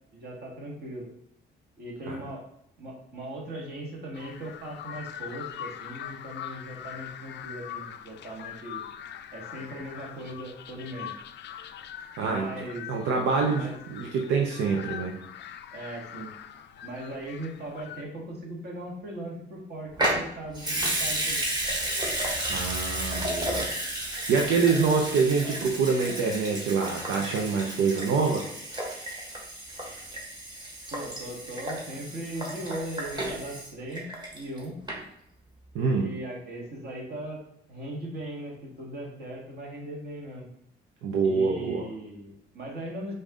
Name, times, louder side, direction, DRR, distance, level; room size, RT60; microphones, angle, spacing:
voice 1, 0.1-1.1 1.8-2.5 2.8-8.8 9.3-11.1 12.2-12.9 13.5-13.7 15.7-16.3 16.8-21.4 30.9-34.8 36.0-37.4 37.7-40.5 41.2-43.2, right 1 dB, 55° right, -2 dB, 1.7 m, -38 dB
sound 1, 4.1-18.0, left 10 dB, 60° left, 0.4 m, -42 dB
voice 2, 12.2-12.5 12.9-15.2 22.5-23.7 24.0-28.5 35.7-36.1 41.0-41.9, right 5 dB, 85° right, 1 dB, 0.6 m, -26 dB
Water tap faucet / Sink (filling or washing) / Liquid, 19.9-34.6 34.9-35.0, right 1 dB, 20° right, 1.4 m, -32 dB
5.2 x 2.7 x 3.6 m, 0.74 s
cardioid pair, 90°, 20 cm